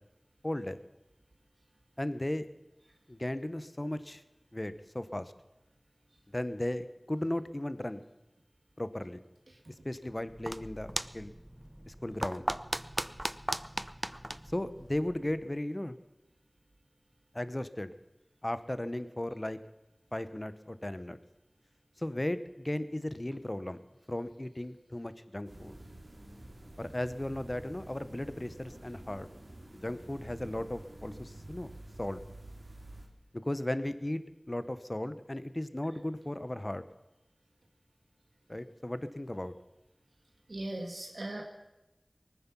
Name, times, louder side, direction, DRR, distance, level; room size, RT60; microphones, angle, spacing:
voice 1, 0.4-0.8 2.0-2.4 3.1-4.2 4.5-5.3 6.3-8.1 8.8-9.2 9.8-11.3 11.9-12.5 14.5-16.0 17.3-17.9 18.4-19.6 20.1-21.2 22.0-23.8 24.1-25.8 26.8-29.3 29.7-31.7 32.0-32.2 33.3-36.8 38.5-39.5, left 1 dB, 35° left, 13 dB, 0.8 m, -36 dB
sound 1, 10.1-15.5, right 1 dB, 20° right, 0.5 m, -38 dB
sound 2, 25.4-33.1, right 1 dB, 65° right, 2.3 m, -49 dB
voice 2, 40.5-41.4, right 1 dB, 90° right, 1 dB, 1.5 m, -38 dB
20.0 x 9.4 x 6.0 m, 0.97 s
wide cardioid pair, 40°, 0 cm